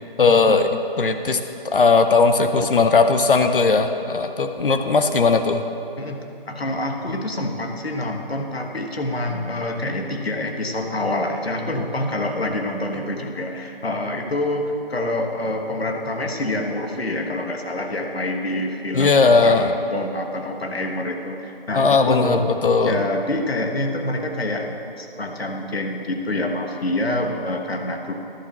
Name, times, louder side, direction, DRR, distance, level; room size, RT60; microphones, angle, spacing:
voice 1, 0.2-1.4 1.7-5.6 18.9-19.7 21.7-23.0, left 4 dB, 60° left, 7 dB, 0.7 m, -18 dB
voice 2, 6.5-22.4 22.8-28.1, left 1 dB, 80° left, 3 dB, 1.4 m, -26 dB
11.0 x 7.0 x 5.9 m, 2.8 s
figure-of-eight pair, 160°, 30 cm